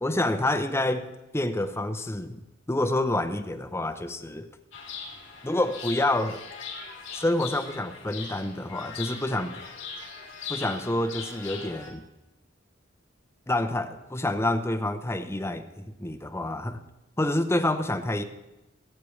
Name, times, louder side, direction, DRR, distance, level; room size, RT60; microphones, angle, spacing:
voice 1, 0.0-1.1 1.3-2.4 2.7-4.5 5.4-6.4 7.1-9.6 10.5-12.0 13.5-16.8 17.2-18.2, left 1 dB, 15° left, 6 dB, 0.7 m, -28 dB
Chirp tweet, 4.7-11.9, left 5 dB, 70° left, 2.8 m, -40 dB
18.5 x 8.5 x 3.2 m, 1.0 s
head